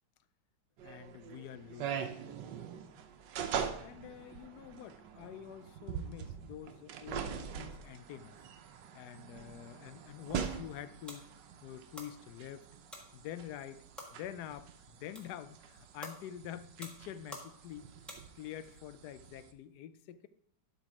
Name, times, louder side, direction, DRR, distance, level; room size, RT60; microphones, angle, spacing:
voice 1, 0.8-2.1 3.8-8.4 8.9-11.3 11.6-12.7 13.1-13.9 14.1-17.9 18.4-20.3, left 10 dB, 75° left, 14 dB, 1.1 m, -47 dB
sound 1, 0.8-19.5, right 7 dB, 85° right, 1.3 m, -43 dB
sound 2, 10.0-18.7, equal, ahead, 1.3 m, -53 dB
11.5 x 4.1 x 4.8 m, 0.67 s
omnidirectional pair, 1.8 m